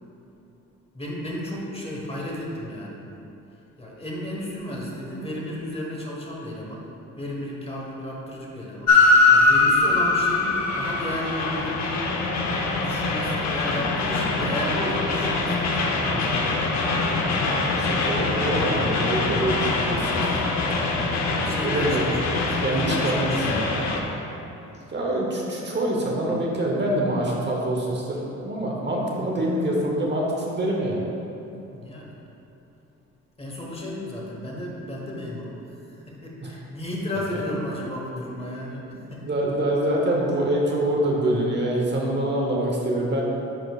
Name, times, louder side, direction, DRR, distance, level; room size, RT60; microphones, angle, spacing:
voice 1, 0.9-3.0 3.8-6.9 7.1-12.1 12.8-16.6 18.2-18.8 21.4-22.2 22.5-23.7 31.6-32.1 33.4-39.3, left 1 dB, 20° left, -3 dB, 1.3 m, -33 dB
Train, 8.9-24.0, left 3 dB, 65° left, 0.8 m, -23 dB
voice 2, 17.5-20.1 21.5-22.0 22.6-23.7 24.9-31.0 39.0-43.2, right 1 dB, 35° right, -2 dB, 0.9 m, -25 dB
10.0 x 4.4 x 2.4 m, 2.9 s
cardioid pair, 90°, 30 cm